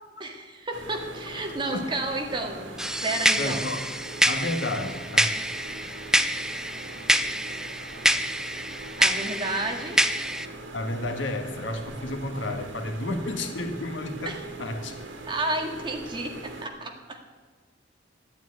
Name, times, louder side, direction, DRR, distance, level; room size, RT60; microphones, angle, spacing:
voice 1, 0.2-2.7 3.0-3.6 9.0-10.0 14.3-14.4 15.3-17.2, right 2 dB, 25° right, 2 dB, 1.9 m, -31 dB
sound 1, 0.7-16.7, right 2 dB, 80° right, 2.3 m, -41 dB
sound 2, 2.8-10.5, right 1 dB, 5° right, 0.5 m, -26 dB
voice 2, 3.4-3.8 4.2-5.3 10.7-15.0, left 1 dB, 75° left, 5 dB, 1.7 m, -31 dB
14.0 x 9.2 x 9.5 m, 1.4 s
head